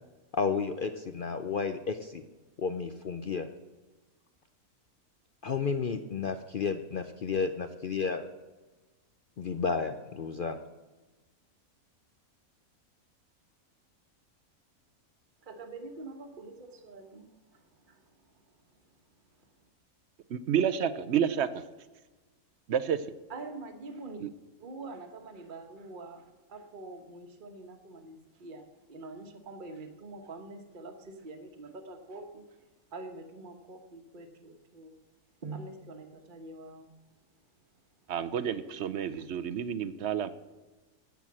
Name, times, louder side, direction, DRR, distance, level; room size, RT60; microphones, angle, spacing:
voice 1, 0.3-2.2 2.6-3.5 5.4-8.3 9.4-10.6, left 5 dB, 60° left, 8 dB, 0.5 m, -32 dB
voice 2, 15.4-18.1 23.3-24.2 24.6-32.6 32.9-35.0 35.4-36.9 39.1-39.2, right 3 dB, 35° right, 5 dB, 1.2 m, -45 dB
voice 3, 20.3-21.6 22.7-23.0 24.2-24.3 38.1-40.3, right 8 dB, 60° right, 13 dB, 0.8 m, -29 dB
10.5 x 8.1 x 7.4 m, 1.2 s
omnidirectional pair, 1.6 m